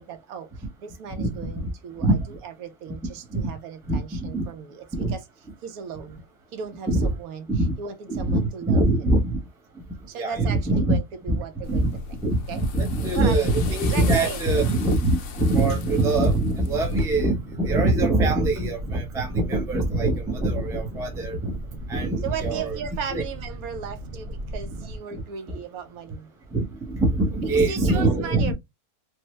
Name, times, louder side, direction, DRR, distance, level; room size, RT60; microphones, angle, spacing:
voice 1, 0.0-5.2 5.6-6.2 6.5-9.1 10.1-11.9 12.5-12.7 13.1-13.4 13.9-14.6 22.2-26.3 27.5-28.5, right 7 dB, 80° right, 1.1 m, -36 dB
voice 2, 1.2-1.7 2.0-2.1 3.3-3.5 3.9-4.0 4.3-4.4 4.9-5.1 6.9-7.1 7.5-7.7 8.1-9.4 10.2-11.0 11.3-11.4 11.7-11.9 12.2-21.6 21.9-22.7 23.1-23.2 25.1-25.2 26.5-28.5, right 2 dB, 5° right, 0.3 m, -23 dB
sound 1, 11.6-17.2, left 4 dB, 65° left, 0.8 m, -36 dB
Boat Water vehicle, 17.0-25.0, right 1 dB, 50° right, 0.8 m, -37 dB
3.3 x 2.0 x 3.0 m
omnidirectional pair, 1.5 m